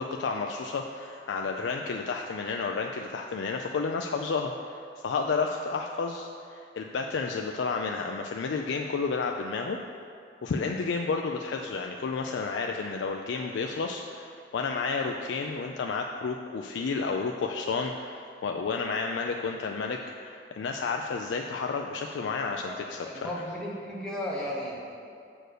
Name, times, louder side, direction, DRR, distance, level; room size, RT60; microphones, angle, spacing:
voice 1, 0.0-9.8 10.4-23.3, left 4 dB, 85° left, 2 dB, 0.4 m, -31 dB
voice 2, 22.6-24.9, left 1 dB, 5° left, -6 dB, 1.2 m, -35 dB
6.3 x 4.5 x 6.6 m, 2.4 s
head